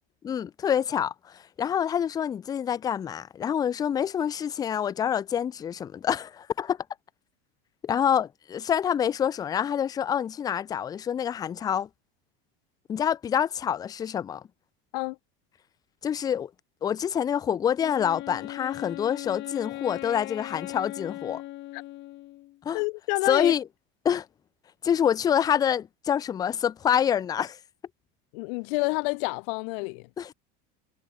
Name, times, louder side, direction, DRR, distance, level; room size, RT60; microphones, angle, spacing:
voice 1, 0.2-6.8 7.8-11.9 12.9-14.4 16.0-16.5 16.8-21.4 22.6-22.8 23.3-23.6 24.0-24.3 24.8-27.6 30.2-30.3, left 8 dB, 15° left, 0.3 m, -27 dB
Wind instrument woodwind instrument, 17.8-22.6, left 17 dB, 40° left, 0.9 m, -39 dB
voice 2, 22.7-23.5 28.3-30.1, left 32 dB, 70° left, 1.4 m, -28 dB
cardioid pair, 160°, 30 cm